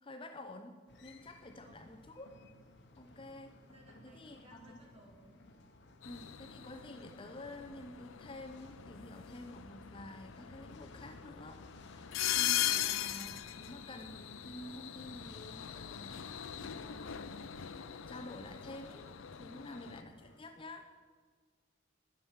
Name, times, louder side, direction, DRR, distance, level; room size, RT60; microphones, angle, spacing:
voice 1, 0.0-2.3 3.0-3.5 4.0-4.8 6.0-19.1 19.4-20.9, left 1 dB, 25° left, 6 dB, 0.7 m, -50 dB
sound 1, 0.9-20.4, left 1 dB, 60° left, 1.1 m, -58 dB
voice 2, 1.4-1.8 3.7-5.4 19.4-19.6, equal, 30° right, 0 dB, 2.2 m, -61 dB
sound 2, 6.0-20.0, left 11 dB, 85° left, 0.5 m, -40 dB
12.0 x 7.3 x 7.3 m, 1.6 s
head